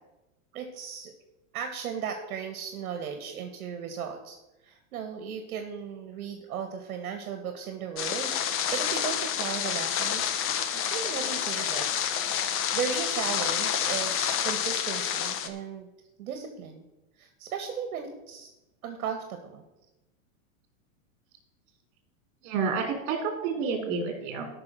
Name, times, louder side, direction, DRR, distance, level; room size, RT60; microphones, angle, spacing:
voice 1, 0.5-1.1 1.5-10.4 10.7-12.0 12.4-15.9 16.2-16.8 17.2-18.5 18.8-19.6, right 7 dB, 75° right, 6 dB, 1.9 m, -36 dB
sound 1, 8.0-15.5, left 9 dB, 30° left, 1.1 m, -29 dB
voice 2, 22.4-24.5, right 5 dB, 50° right, 5 dB, 3.7 m, -29 dB
13.5 x 6.2 x 6.4 m, 0.98 s
supercardioid pair, 135°, 42 cm